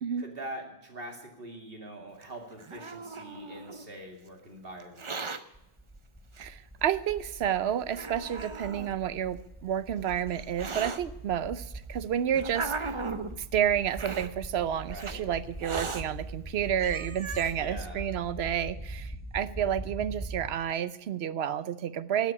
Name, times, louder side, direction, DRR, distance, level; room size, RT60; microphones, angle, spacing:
voice 1, 0.2-5.1 14.9-15.3 17.6-18.1, right 1 dB, 65° right, 2 dB, 2.5 m, -43 dB
Hiss, 2.2-3.9 4.8-5.4 6.4-6.5 7.3-7.4 7.9-8.9 9.8-11.0 11.8-13.3 13.9-14.3 15.0-15.1 15.6-16.0 16.5-16.6 16.8-17.5, right 4 dB, 35° right, 0.7 m, -37 dB
sound 1, 5.5-20.5, right 1 dB, 10° right, 1.7 m, -42 dB
voice 2, 6.4-13.0 13.3-22.3, right 9 dB, 85° right, 15 dB, 1.0 m, -30 dB
12.0 x 8.3 x 9.5 m, 0.86 s
omnidirectional pair, 1.0 m